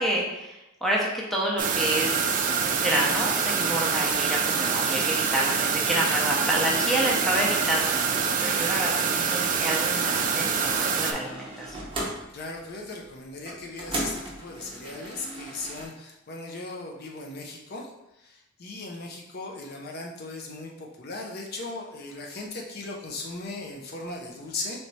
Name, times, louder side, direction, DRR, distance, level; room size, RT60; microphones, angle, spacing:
voice 1, 0.0-2.4 2.7-11.9, right 1 dB, ahead, -4 dB, 0.7 m, -29 dB
sound 1, 1.6-11.1, right 6 dB, 40° right, 0.4 m, -25 dB
sound 2, 8.0-15.9, right 1 dB, 25° right, 0.9 m, -39 dB
voice 2, 12.3-24.8, left 2 dB, 50° left, -1 dB, 0.5 m, -38 dB
3.2 x 3.1 x 4.1 m, 0.92 s
head